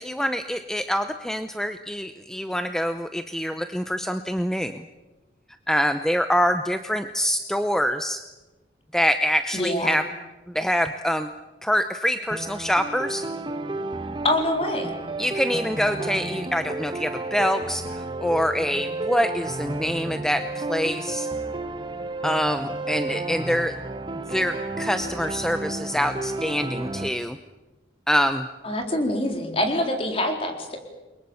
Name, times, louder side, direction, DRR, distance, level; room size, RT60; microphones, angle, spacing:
voice 1, 0.0-4.8 5.7-8.2 8.9-10.1 10.5-11.3 11.6-13.2 15.2-21.3 22.2-23.7 24.3-27.4 28.1-28.5, equal, 5° left, 8 dB, 0.8 m, -25 dB
voice 2, 9.5-10.0 14.2-15.0 28.6-30.8, left 1 dB, 35° left, 3 dB, 4.0 m, -25 dB
sound 1, 12.3-27.1, right 2 dB, 25° right, 1.4 m, -32 dB
29.5 x 22.5 x 7.1 m, 1.1 s
head